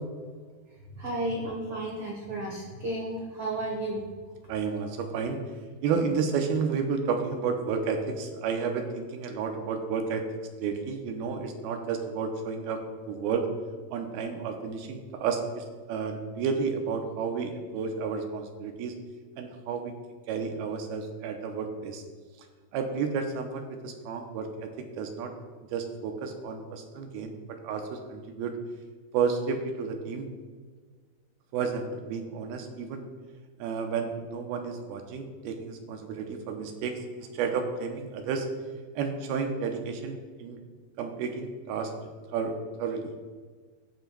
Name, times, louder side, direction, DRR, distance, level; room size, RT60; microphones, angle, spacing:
voice 1, 0.9-4.0, right 1 dB, 75° right, -2 dB, 1.3 m, -33 dB
voice 2, 4.5-5.4 5.8-10.2 10.6-12.8 13.1-13.5 13.9-19.0 19.4-19.9 20.3-22.0 22.7-25.3 25.7-27.3 27.6-28.6 29.1-30.3 31.5-33.1 33.6-38.5 39.0-40.6 41.0-41.9 42.3-43.1, right 5 dB, 90° right, 4 dB, 2.6 m, -31 dB
16.5 x 7.0 x 2.2 m, 1.5 s
omnidirectional pair, 4.3 m